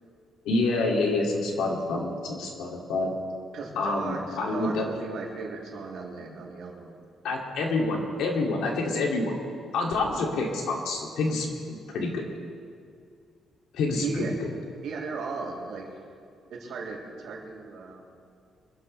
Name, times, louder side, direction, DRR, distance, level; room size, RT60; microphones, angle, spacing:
voice 1, 0.5-3.1 3.8-4.9 7.2-9.3 9.7-12.3 13.7-14.5, left 2 dB, 85° left, 0 dB, 2.4 m, -27 dB
voice 2, 3.5-6.9 13.9-14.3 14.8-15.9 16.5-18.1, right 4 dB, 75° right, -2 dB, 3.1 m, -36 dB
24.0 x 12.0 x 3.3 m, 2.3 s
cardioid pair, 90°, 0 cm